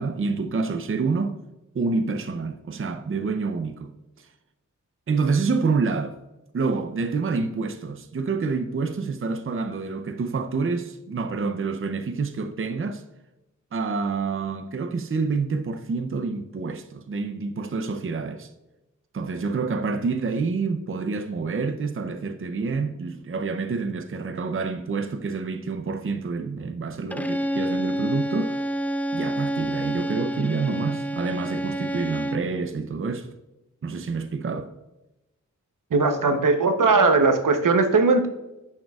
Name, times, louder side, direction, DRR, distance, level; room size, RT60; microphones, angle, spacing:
voice 1, 0.0-1.4 1.7-3.9 4.2-4.3 5.1-6.2 6.5-13.0 13.7-18.5 19.1-28.6 29.1-33.3 33.8-34.7, right 4 dB, 45° right, 0.6 m, -27 dB
Bowed string instrument, 27.1-32.6, right 1 dB, 5° left, 0.4 m, -28 dB
voice 2, 35.9-38.3, right 3 dB, 85° right, 0.9 m, -19 dB
9.7 x 6.4 x 2.3 m
wide cardioid pair, 95°, 31 cm